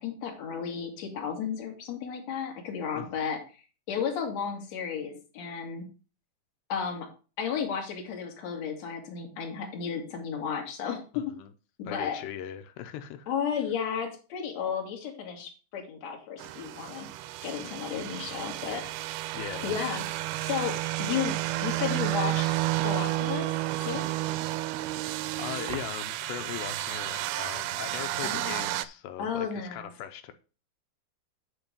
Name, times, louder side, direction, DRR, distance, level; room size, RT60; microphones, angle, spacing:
voice 1, 0.0-3.4 3.9-5.8 6.7-7.1 7.4-11.3 11.8-12.2 13.3-17.1 17.4-18.8 19.6-20.0 20.4-22.6 22.8-24.1 28.2-28.7 29.2-29.9, left 7 dB, 50° left, 1 dB, 2.8 m, -33 dB
voice 2, 2.9-3.3 11.1-11.5 11.9-13.3 19.3-19.8 25.4-30.3, left 10 dB, 85° left, 9 dB, 2.8 m, -39 dB
sound 1, 16.4-28.9, right 17 dB, 80° right, 2.3 m, -31 dB
8.9 x 4.4 x 6.6 m, 0.35 s
omnidirectional pair, 4.9 m